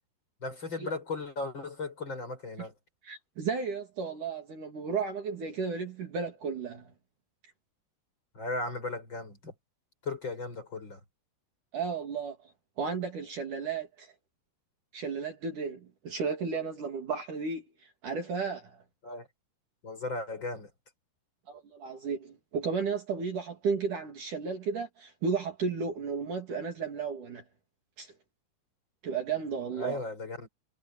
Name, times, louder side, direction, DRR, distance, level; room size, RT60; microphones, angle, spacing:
voice 1, 0.4-2.7 8.3-9.5 10.0-11.0 19.0-19.3 19.8-20.7 29.8-30.5, left 3 dB, 25° left, 5.6 m, -36 dB
voice 2, 3.0-6.9 11.7-12.5 12.8-14.1 14.9-17.7 18.0-18.8 21.5-27.4 28.0-28.1 29.0-30.0, right 5 dB, 50° right, 3.8 m, -33 dB
omnidirectional pair, 5.0 m